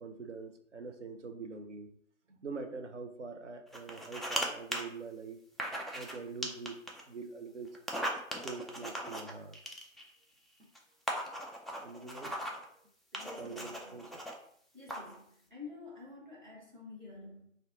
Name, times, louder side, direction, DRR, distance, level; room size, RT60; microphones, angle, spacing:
voice 1, 0.0-1.9 2.3-5.4 5.9-7.7 8.4-9.6 10.6-10.7 11.8-12.3 13.4-14.2, right 4 dB, 60° right, 6 dB, 0.5 m, -44 dB
sound 1, 3.7-4.5 4.7-4.8 5.6-6.2 6.4-7.0 7.7-10.1 10.8-10.9 11.1-12.6 13.1-14.3 14.9-15.2, equal, ahead, 0.3 m, -38 dB
voice 2, 13.1-14.1 14.7-17.5, left 3 dB, 35° right, -5 dB, 0.9 m, -49 dB
2.6 x 2.2 x 3.8 m, 0.67 s
figure-of-eight pair, 160°, 40 cm